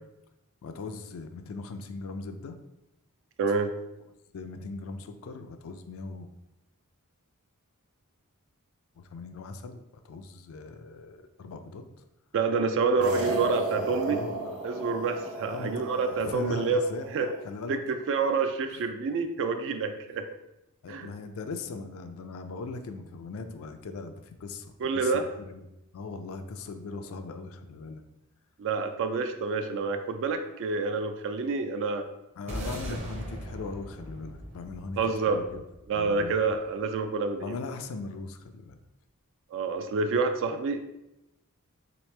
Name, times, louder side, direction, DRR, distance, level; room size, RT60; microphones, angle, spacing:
voice 1, 0.6-2.6 4.3-6.3 9.0-11.8 13.0-14.7 15.5-15.8 16.1-17.1 17.4-17.8 18.7-18.8 20.8-25.6 25.9-28.0 32.4-35.6 35.9-36.4 37.4-38.8, left 3 dB, 65° left, 8 dB, 0.4 m, -39 dB
voice 2, 3.4-3.8 12.3-14.2 14.6-16.8 17.1-17.3 17.7-20.3 20.9-21.1 24.8-25.3 28.6-32.1 35.0-35.5 35.9-37.5 39.5-40.8, right 4 dB, 60° right, 7 dB, 0.3 m, -28 dB
sound 1, 13.0-17.5, right 3 dB, 80° right, 1.2 m, -35 dB
sound 2, 32.5-36.9, equal, 30° right, 0.7 m, -40 dB
3.9 x 3.0 x 3.2 m, 0.90 s
head